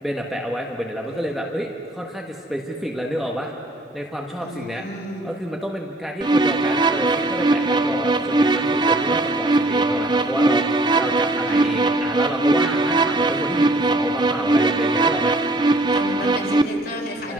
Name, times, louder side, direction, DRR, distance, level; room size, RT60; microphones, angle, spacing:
voice 1, 0.0-3.5 3.9-4.8 5.2-15.4 17.2-17.3, equal, ahead, -1 dB, 1.4 m, -29 dB
voice 2, 4.4-5.3 11.5-11.8 15.9-17.3, left 1 dB, 50° left, -1 dB, 4.9 m, -32 dB
sound 1, 6.2-16.6, right 2 dB, 25° right, 0.6 m, -20 dB
29.5 x 26.0 x 6.3 m, 2.9 s
head